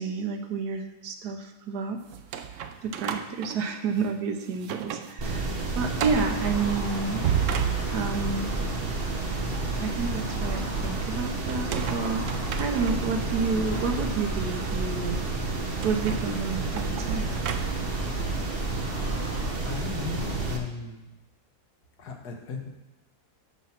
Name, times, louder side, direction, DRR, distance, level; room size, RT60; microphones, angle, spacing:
voice 1, 0.0-2.0 2.8-7.3 7.9-8.5 9.8-12.3 12.6-15.2 15.8-17.3, right 4 dB, 80° right, 6 dB, 1.4 m, -30 dB
sound 1, 2.1-4.2 4.6-5.2 5.5-5.6 6.0-6.4 7.0-8.3 11.5-13.3 13.9-14.1 15.8-18.1, right 9 dB, 65° right, 0.8 m, -33 dB
sound 2, 5.2-20.6, right 3 dB, 40° right, 1.1 m, -30 dB
sound 3, 6.0-19.5, equal, 10° left, 1.9 m, -42 dB
voice 2, 19.6-21.1 22.0-22.7, left 4 dB, 75° left, 2 dB, 1.7 m, -37 dB
7.7 x 5.9 x 5.8 m, 1.0 s
omnidirectional pair, 1.7 m